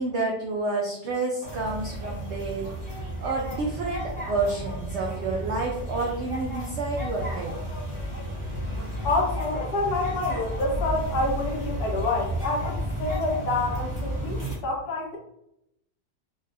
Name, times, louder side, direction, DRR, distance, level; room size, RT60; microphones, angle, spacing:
voice 1, 0.0-7.5, right 3 dB, 80° right, -1 dB, 0.6 m, -29 dB
sound 1, 1.4-14.5, equal, 15° right, 1.0 m, -32 dB
voice 2, 9.0-15.2, left 2 dB, 70° left, 0 dB, 1.2 m, -28 dB
3.8 x 2.4 x 2.5 m, 0.80 s
omnidirectional pair, 1.8 m